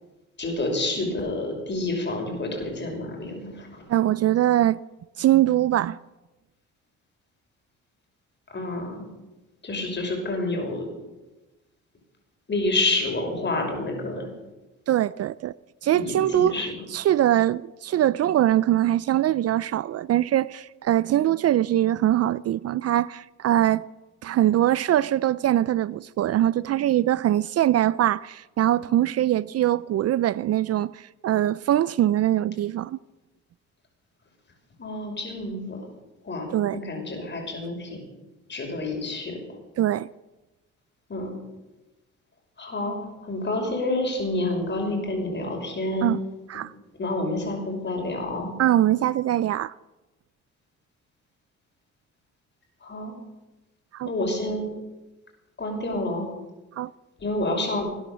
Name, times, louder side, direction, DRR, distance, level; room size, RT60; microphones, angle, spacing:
voice 1, 0.4-3.8 8.5-9.0 9.6-10.9 12.5-14.3 15.9-16.8 34.8-35.8 36.2-38.0 38.5-39.4 41.1-41.3 42.6-43.0 43.2-46.1 47.0-48.6 52.8-53.1 54.0-54.7 55.6-56.3 57.2-57.9, left 2 dB, 35° left, 5.8 m, -28 dB
voice 2, 3.9-4.8 5.2-6.0 14.9-15.5 15.8-23.8 24.2-33.0 36.5-36.8 39.8-40.1 46.0-46.2 46.5-46.7 48.6-49.7 53.9-54.1 56.8-56.9, right 12 dB, 55° right, 0.4 m, -22 dB
19.5 x 10.0 x 6.9 m
cardioid pair, 90°, 30 cm